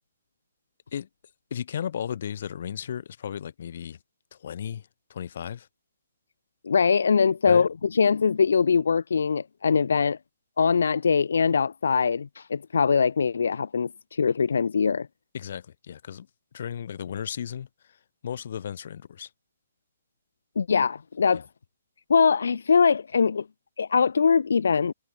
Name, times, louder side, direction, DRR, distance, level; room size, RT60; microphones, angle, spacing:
voice 1, 1.5-4.0 4.3-5.7 7.5-7.7 15.3-16.3 16.5-17.7 18.2-19.3 21.3-21.4, left 8 dB, 55° left, 6.7 m, -34 dB
voice 2, 6.6-10.2 10.6-15.1 20.6-21.4 22.1-23.4 23.8-24.9, left 5 dB, 75° left, 1.1 m, -22 dB
hypercardioid pair, 155°, 0 cm